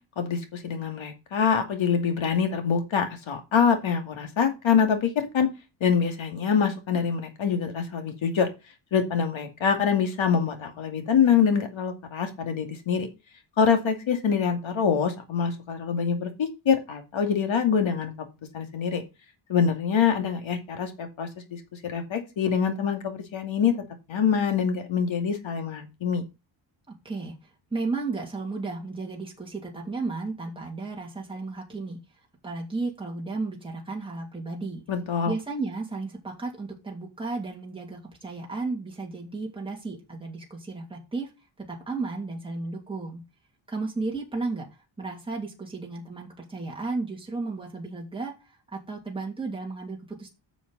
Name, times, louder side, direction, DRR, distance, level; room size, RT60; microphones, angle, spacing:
voice 1, 0.2-5.5 5.8-8.5 8.9-13.1 13.6-18.3 18.5-19.0 19.5-23.8 24.1-26.2 34.9-35.3, left 7 dB, 70° left, 6 dB, 2.5 m, -25 dB
voice 2, 26.9-27.4 27.7-32.0 32.4-34.8 35.3-41.3 41.6-43.2 43.7-44.7 45.0-50.3, right 3 dB, 10° right, -1 dB, 2.9 m, -34 dB
9.9 x 6.9 x 4.1 m, 0.26 s
wide cardioid pair, 130°, 49 cm